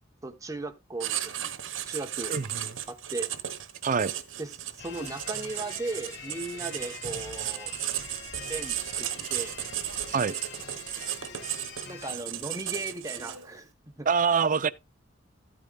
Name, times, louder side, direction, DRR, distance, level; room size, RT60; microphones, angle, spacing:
voice 1, 0.2-1.5 1.9-2.4 2.9-3.3 4.4-7.7 8.5-9.6 11.8-14.1, right 2 dB, 15° right, 0.9 m, -37 dB
Writing, 1.0-13.6, right 11 dB, 85° right, 1.0 m, -35 dB
voice 2, 2.3-2.7 3.8-4.1 10.1-10.3 14.1-14.7, right 6 dB, 45° right, 0.5 m, -25 dB
sound 1, 4.8-12.1, left 5 dB, 60° left, 1.7 m, -44 dB
13.5 x 8.7 x 2.3 m
head